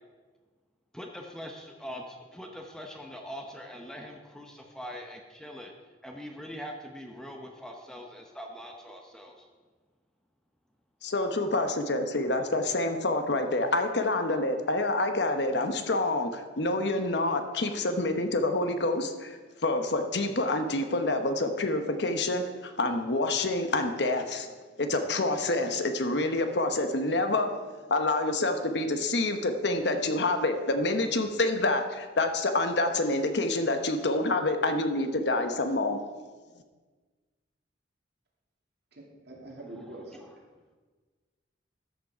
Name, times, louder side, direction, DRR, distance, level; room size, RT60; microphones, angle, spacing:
voice 1, 0.9-5.7 6.0-9.5 40.2-40.3, equal, 5° left, 2 dB, 0.8 m, -42 dB
voice 2, 11.0-24.5 24.8-27.5 27.9-36.0, left 2 dB, 60° left, 7 dB, 0.9 m, -27 dB
voice 3, 38.9-40.2, right 1 dB, 60° right, -2 dB, 2.6 m, -44 dB
13.0 x 6.6 x 5.0 m, 1.4 s
head